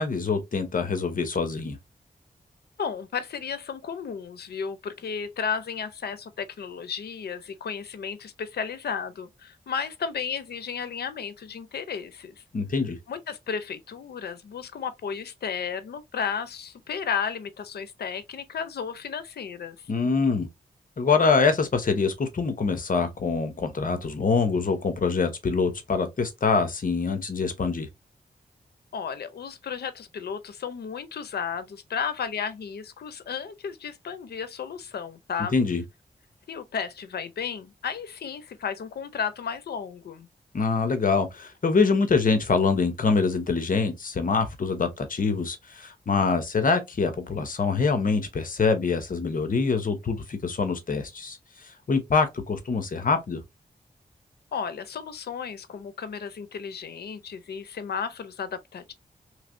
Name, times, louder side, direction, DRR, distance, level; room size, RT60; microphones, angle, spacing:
voice 1, 0.0-1.8 12.5-13.0 19.9-20.5 21.0-27.9 35.5-35.8 40.5-51.4 51.7-53.4, left 4 dB, 60° left, 0.9 m, -25 dB
voice 2, 2.8-12.4 13.1-19.9 28.9-35.5 36.5-40.3 54.5-58.9, left 6 dB, 85° left, 0.6 m, -33 dB
3.2 x 3.0 x 2.6 m
cardioid pair, 65°, 16 cm